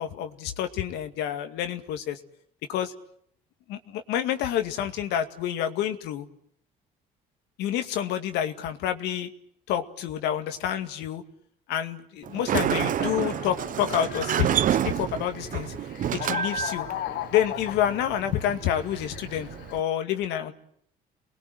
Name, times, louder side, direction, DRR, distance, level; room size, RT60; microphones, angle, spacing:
voice 1, 0.0-2.2 2.7-2.9 3.7-6.3 7.6-9.3 9.7-11.2 11.7-15.8 16.1-16.8 17.3-20.5, left 10 dB, 90° left, 7 dB, 2.3 m, -28 dB
Sliding door, 12.2-19.8, right 10 dB, 50° right, 1.0 m, -29 dB
sound 1, 12.9-19.8, left 13 dB, 75° left, 1.1 m, -38 dB
29.0 x 21.5 x 7.8 m, 0.68 s
cardioid pair, 110°, 17 cm